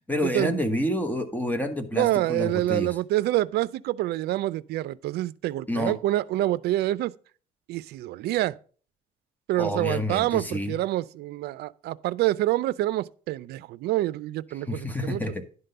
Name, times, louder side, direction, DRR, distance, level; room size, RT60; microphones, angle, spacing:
voice 1, 0.1-2.9 5.7-5.9 9.6-10.7 14.7-15.3, left 1 dB, 10° left, 1.2 m, -28 dB
voice 2, 1.9-7.1 7.7-8.6 9.5-15.2, right 15 dB, 70° right, 0.5 m, -27 dB
11.0 x 3.8 x 6.6 m
cardioid pair, 110°, 17 cm